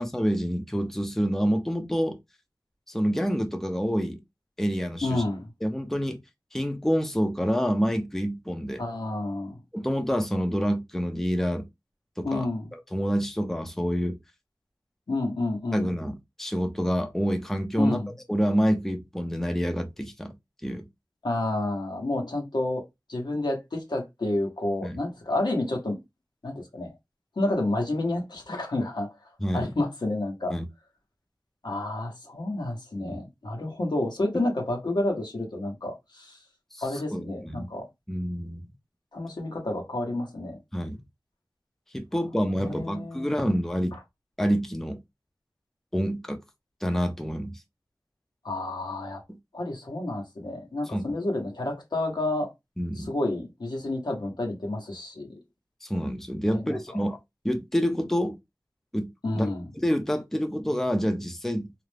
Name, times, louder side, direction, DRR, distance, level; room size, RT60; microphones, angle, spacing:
voice 1, 0.0-2.2 2.9-4.2 4.6-5.2 5.6-6.2 6.5-8.8 9.7-11.6 12.2-12.5 12.7-14.2 15.7-18.0 18.3-20.3 20.6-20.8 24.8-25.0 29.4-29.7 30.5-30.6 33.0-33.2 36.7-36.8 37.1-37.7 38.1-38.6 40.7-41.0 41.9-44.0 44.4-45.0 45.9-46.4 46.8-47.6 50.9-51.0 52.8-53.1 55.8-57.2 57.4-58.4 58.9-59.5 59.8-61.7, equal, 5° left, 0.5 m, -27 dB
voice 2, 5.0-5.5 8.8-9.6 12.2-12.7 15.1-15.9 17.8-18.1 21.2-22.8 23.1-26.0 26.4-26.9 27.4-29.1 29.5-30.5 31.6-36.4 36.8-37.8 39.1-40.6 42.6-43.5 48.4-49.2 49.5-52.5 52.9-55.4 56.5-56.8 59.2-59.7, left 2 dB, 75° left, 0.9 m, -30 dB
2.4 x 2.0 x 3.2 m
wide cardioid pair, 60°, 7 cm